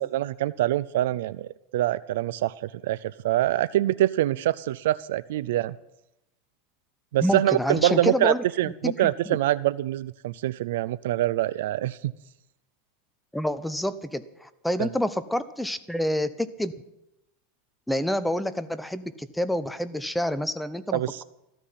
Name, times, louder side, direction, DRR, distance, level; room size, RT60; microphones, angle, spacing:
voice 1, 0.1-5.8 7.1-12.1 14.8-14.9 20.9-21.2, right 14 dB, 80° right, 16 dB, 0.4 m, -25 dB
voice 2, 7.2-8.4 8.8-9.4 13.3-16.7 17.9-21.2, left 1 dB, 5° left, 12 dB, 0.9 m, -28 dB
14.5 x 13.5 x 5.9 m, 0.88 s
supercardioid pair, 125°, 0 cm